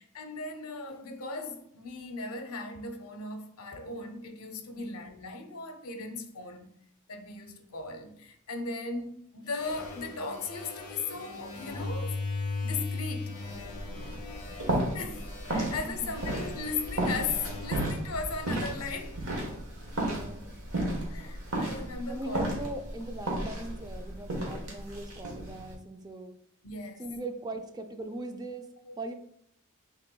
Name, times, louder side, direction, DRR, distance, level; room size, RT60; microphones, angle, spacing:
voice 1, 0.0-6.8 7.1-12.2 12.6-13.4 14.9-19.2 21.1-22.4 26.6-27.0 28.9-29.0, left 4 dB, 75° left, 0.6 m, -37 dB
sound 1, 9.5-18.9, left 3 dB, 20° left, 1.1 m, -39 dB
sound 2, 13.5-25.7, right 1 dB, 75° right, 1.1 m, -34 dB
voice 2, 20.0-20.5 22.1-26.3 27.0-29.1, right 2 dB, 20° right, 0.4 m, -40 dB
5.9 x 2.9 x 2.2 m
head